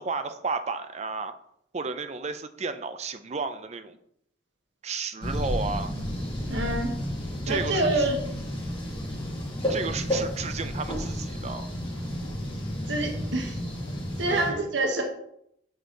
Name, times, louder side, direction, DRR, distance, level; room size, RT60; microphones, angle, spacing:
voice 1, 0.0-1.4 1.7-4.0 4.8-5.9 7.5-8.1 9.7-11.7 14.3-14.6, right 4 dB, 35° right, 10 dB, 0.5 m, -33 dB
sound 1, 5.2-14.5, equal, 30° left, 1.9 m, -31 dB
voice 2, 6.5-6.9 7.5-8.2 12.9-13.6 14.2-15.0, right 2 dB, 75° right, 3 dB, 1.3 m, -26 dB
7.2 x 6.3 x 3.8 m, 0.73 s
head